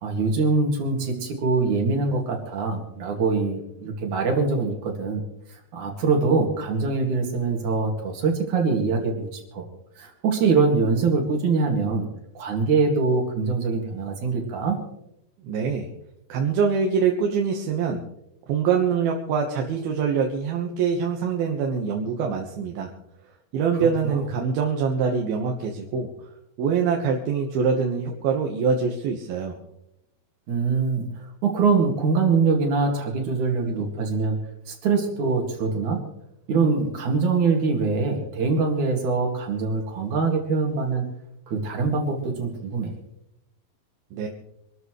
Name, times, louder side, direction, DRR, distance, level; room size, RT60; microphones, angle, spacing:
voice 1, 0.0-5.2 5.5-9.6 10.0-12.1 12.3-14.8 23.8-24.2 30.5-34.4 34.7-36.0 36.5-41.1 41.5-42.9, right 4 dB, 60° right, 2 dB, 3.4 m, -23 dB
voice 2, 15.4-15.9 16.3-18.0 18.5-22.9 23.5-26.1 26.6-29.6 44.1-44.3, right 6 dB, 85° right, 1 dB, 3.2 m, -24 dB
26.0 x 13.5 x 3.2 m, 0.81 s
omnidirectional pair, 4.3 m